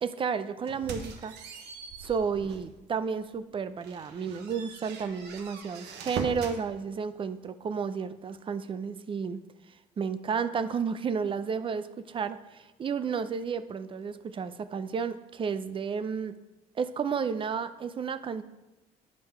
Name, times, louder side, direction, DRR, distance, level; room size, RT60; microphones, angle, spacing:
voice 1, 0.0-1.3 2.0-9.4 10.0-16.3 16.8-18.4, right 6 dB, 30° right, 13 dB, 0.5 m, -32 dB
sound 1, 0.7-2.8 3.2-3.3 3.8-6.6, right 5 dB, 85° right, 1.1 m, -41 dB
9.7 x 5.4 x 4.5 m, 1.0 s
cardioid pair, 110°, 17 cm